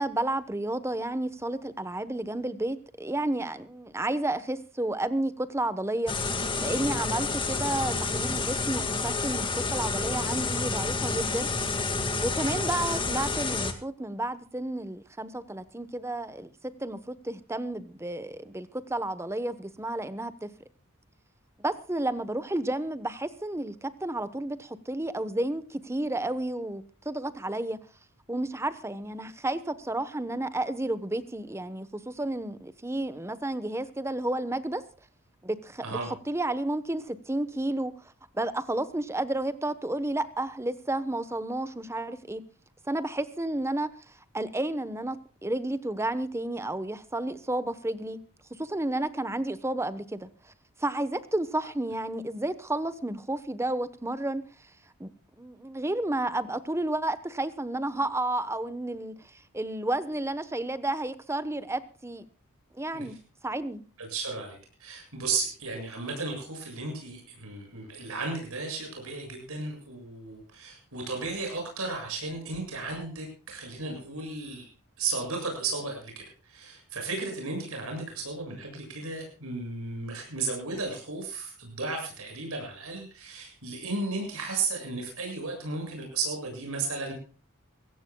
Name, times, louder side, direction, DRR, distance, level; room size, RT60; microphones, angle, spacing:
voice 1, 0.0-11.5 12.2-20.5 21.6-27.8 28.3-34.8 35.4-36.0 36.3-37.9 38.3-42.4 42.9-48.2 48.5-50.5 50.8-54.4 55.0-55.1 55.4-62.2 62.7-63.2 63.4-63.8, right 1 dB, 10° right, 14 dB, 1.1 m, -31 dB
sound 1, 6.1-13.7, left 3 dB, 20° left, 1.9 m, -29 dB
voice 2, 64.0-74.7 75.0-87.1, right 3 dB, 70° right, 2 dB, 7.3 m, -34 dB
23.0 x 17.0 x 2.3 m, 0.37 s
head